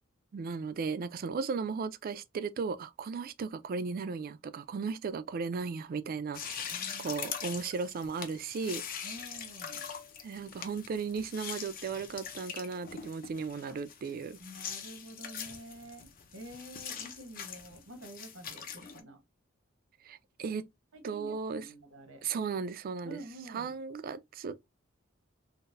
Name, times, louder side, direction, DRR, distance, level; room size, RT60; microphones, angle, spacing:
voice 1, 0.3-6.7 7.0-8.8 10.2-14.4 20.0-20.6 21.0-21.6 22.2-23.2 23.5-24.6, right 5 dB, 45° right, 0.3 m, -36 dB
sound 1, 6.3-19.0, left 7 dB, 45° left, 0.5 m, -43 dB
voice 2, 6.7-7.2 9.0-9.9 13.7-13.8 14.4-19.2 20.9-22.2 23.0-23.8, right 1 dB, 85° right, 1.0 m, -48 dB
3.9 x 2.0 x 2.5 m
head